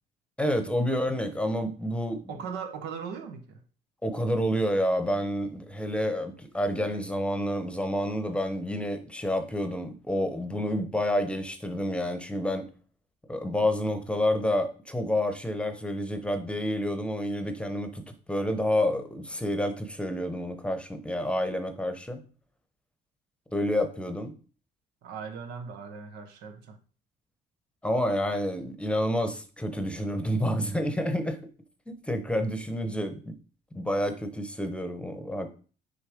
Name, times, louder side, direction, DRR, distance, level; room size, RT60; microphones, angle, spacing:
voice 1, 0.4-2.3 4.0-12.7 13.3-18.0 18.3-22.2 23.5-24.3 27.8-31.4 32.1-33.3 33.7-35.6, equal, 5° left, 0.9 m, -29 dB
voice 2, 2.3-3.6 25.0-26.8, right 6 dB, 80° right, 1.1 m, -39 dB
6.5 x 4.0 x 5.0 m
cardioid pair, 110°, 17 cm